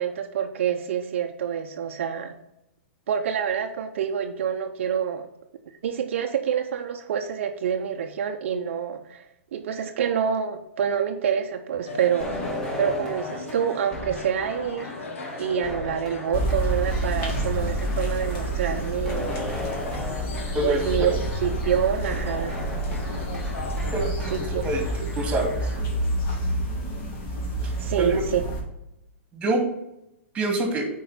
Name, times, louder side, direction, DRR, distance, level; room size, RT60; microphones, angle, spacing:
voice 1, 0.0-2.4 3.1-5.3 5.8-9.2 9.5-12.4 12.8-14.9 15.4-19.4 20.6-21.1 21.4-22.6 24.3-24.6 27.8-28.4, right 8 dB, 70° right, 5 dB, 0.7 m, -27 dB
sound 1, 11.8-24.1, left 3 dB, 80° left, 1.1 m, -39 dB
sound 2, 12.2-25.8, left 1 dB, 5° left, 2.0 m, -37 dB
sound 3, 16.3-28.6, right 1 dB, 35° left, 2.2 m, -28 dB
voice 2, 20.5-21.2 23.9-25.7 28.0-28.2 29.3-29.6 30.3-30.8, right 2 dB, 15° right, 2 dB, 2.2 m, -26 dB
8.5 x 4.6 x 4.2 m, 0.84 s
hypercardioid pair, 135°, 7 cm